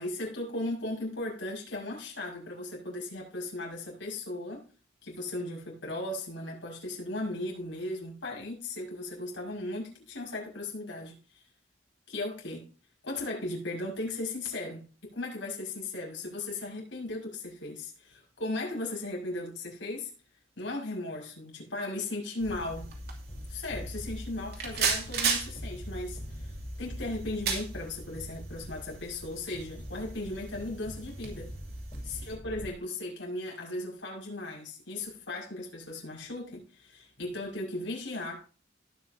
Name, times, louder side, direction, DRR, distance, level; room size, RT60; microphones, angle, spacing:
voice 1, 0.0-4.6 5.0-11.4 12.1-12.7 13.0-20.1 20.6-22.9 23.5-31.5 32.0-38.4, left 2 dB, 80° left, 6.0 m, -37 dB
sound 1, 22.4-32.3, right 5 dB, 55° right, 2.8 m, -37 dB
sound 2, 22.5-32.7, equal, 30° left, 4.0 m, -44 dB
18.5 x 6.3 x 2.8 m
head